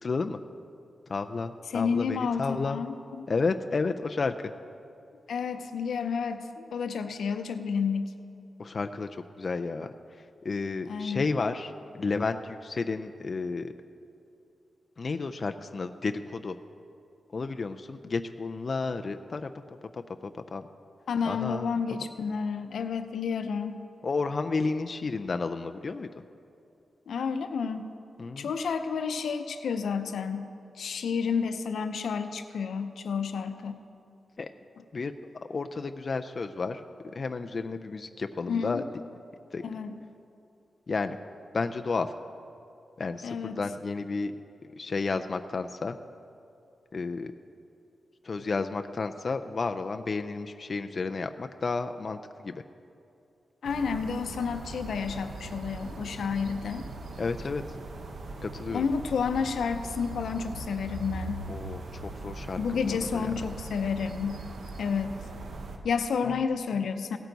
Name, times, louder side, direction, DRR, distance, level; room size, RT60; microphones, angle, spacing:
voice 1, 0.0-0.4 1.1-2.8 3.3-4.5 8.6-13.7 15.0-16.6 17.3-19.5 19.9-20.6 21.2-21.7 24.0-26.1 28.2-28.5 34.4-34.5 34.9-35.1 35.5-38.8 39.5-39.6 40.9-41.2 41.5-42.2 43.0-44.4 44.8-46.0 46.9-47.3 48.2-52.6 57.2-57.6 58.4-58.9 61.5-63.2 66.2-66.4, left 4 dB, 35° left, 7 dB, 0.3 m, -32 dB
voice 2, 1.7-3.3 5.3-8.1 10.9-11.2 21.1-23.8 27.1-27.9 28.4-30.5 30.8-33.8 38.5-38.8 39.6-40.0 43.2-43.6 53.6-56.9 58.7-61.4 62.6-64.4 64.8-65.2 65.8-67.2, left 6 dB, 90° left, 8 dB, 0.6 m, -30 dB
sound 1, 53.6-65.8, right 2 dB, 60° right, 0.9 m, -40 dB
17.0 x 9.1 x 4.0 m, 2.6 s
wide cardioid pair, 175°, 0 cm